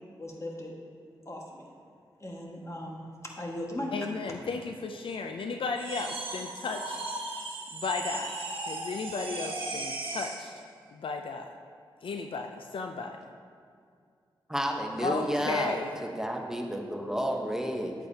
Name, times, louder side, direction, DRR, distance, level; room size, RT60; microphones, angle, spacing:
voice 1, 0.2-0.7 1.2-1.7 2.2-4.1, left 1 dB, 30° left, -1 dB, 1.7 m, -38 dB
voice 2, 3.9-7.0 7.7-8.3 8.7-10.5 10.9-11.5 12.0-13.2 15.0-15.9, left 4 dB, 70° left, 4 dB, 0.5 m, -34 dB
sound 1, 5.8-10.5, right 2 dB, 70° right, 1.3 m, -37 dB
voice 3, 14.5-15.8 16.0-17.9, equal, 5° right, 1 dB, 1.0 m, -31 dB
9.6 x 8.3 x 2.8 m, 2.3 s
supercardioid pair, 40°, 9 cm